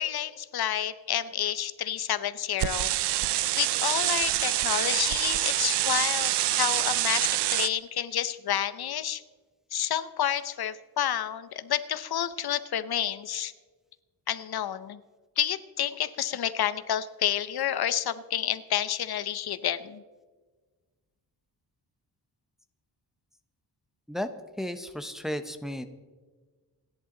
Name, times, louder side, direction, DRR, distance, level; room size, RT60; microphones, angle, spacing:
voice 1, 0.0-2.9 3.6-9.2 9.7-13.5 14.3-15.0 15.4-20.0, left 10 dB, 65° left, 13 dB, 0.7 m, -29 dB
sound 1, 2.6-7.7, right 14 dB, 90° right, 0.6 m, -26 dB
voice 2, 24.6-25.9, left 1 dB, ahead, 8 dB, 0.8 m, -33 dB
27.5 x 11.0 x 3.9 m, 1.4 s
wide cardioid pair, 150°, 40 cm